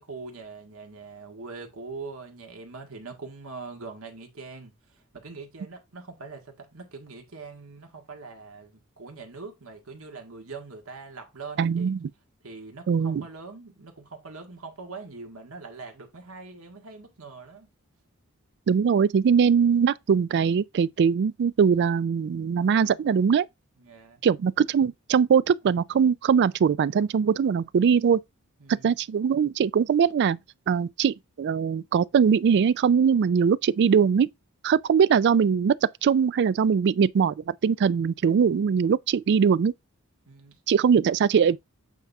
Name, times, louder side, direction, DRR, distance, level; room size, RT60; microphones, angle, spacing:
voice 1, 0.0-11.9 12.4-17.7 23.8-24.2 28.6-28.9 40.3-40.6, right 4 dB, 70° right, 1.8 m, -42 dB
voice 2, 11.6-12.1 12.9-13.2 18.7-23.5 24.2-28.2 28.8-30.4 30.7-34.3 34.6-35.7 36.0-37.3 37.6-39.7 40.7-41.6, right 6 dB, 55° right, 0.3 m, -21 dB
8.3 x 4.2 x 3.4 m
head